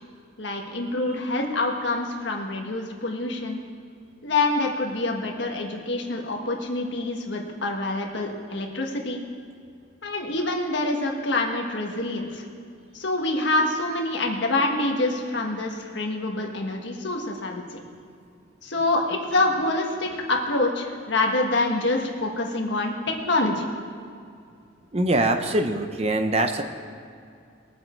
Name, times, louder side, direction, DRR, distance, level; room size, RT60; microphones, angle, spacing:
voice 1, 0.4-3.6 4.2-9.2 10.0-12.4 12.9-17.8 18.6-23.7, left 2 dB, 60° left, 1 dB, 1.5 m, -26 dB
voice 2, 24.9-26.6, right 2 dB, 30° right, 7 dB, 0.6 m, -23 dB
20.5 x 7.7 x 4.4 m, 2.3 s
head